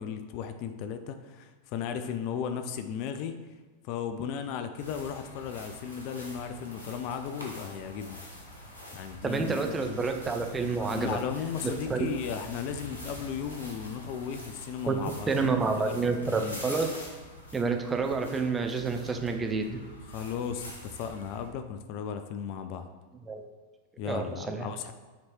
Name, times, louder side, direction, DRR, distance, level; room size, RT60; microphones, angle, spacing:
voice 1, 0.0-3.4 3.8-8.2 8.9-10.0 10.8-16.6 20.1-22.9 24.0-24.9, left 7 dB, 45° left, 8 dB, 0.4 m, -36 dB
sound 1, 4.8-21.5, left 1 dB, 75° left, 1.4 m, -45 dB
voice 2, 9.2-11.2 11.9-12.1 14.9-15.0 15.3-16.9 17.5-19.8 23.3-23.5 24.0-24.7, right 4 dB, 15° right, 5 dB, 0.6 m, -29 dB
7.1 x 3.2 x 4.2 m, 1.4 s
figure-of-eight pair, 90°, 0 cm